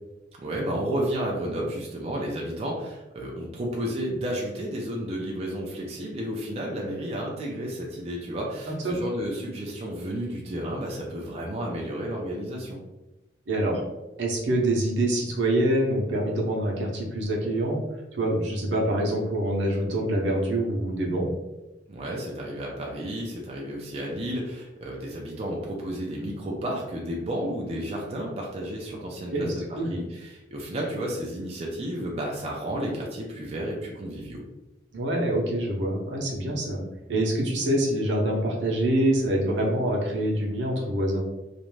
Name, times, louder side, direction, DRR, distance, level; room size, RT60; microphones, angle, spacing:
voice 1, 0.4-12.8 21.9-34.4, right 1 dB, 35° right, -2 dB, 0.4 m, -32 dB
voice 2, 13.5-13.8 14.2-17.8 18.1-21.3 29.3-29.5 29.8-30.0 34.9-36.8 37.1-41.2, right 1 dB, 80° right, -2 dB, 0.7 m, -25 dB
2.5 x 2.1 x 3.1 m, 1.0 s
head